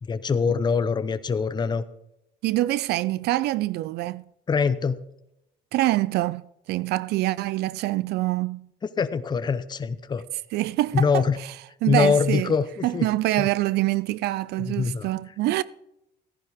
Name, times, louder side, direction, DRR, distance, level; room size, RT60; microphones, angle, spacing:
voice 1, 0.0-1.8 4.5-5.0 9.0-10.2 10.9-11.4 11.9-13.1 13.4-13.5 14.6-15.1, left 5 dB, 25° left, 0.7 m, -24 dB
voice 2, 2.4-4.2 5.7-8.7 10.5-11.5 11.8-12.5 12.8-15.6, right 17 dB, 75° right, 0.4 m, -25 dB
15.0 x 10.5 x 3.6 m
cardioid pair, 110°, 17 cm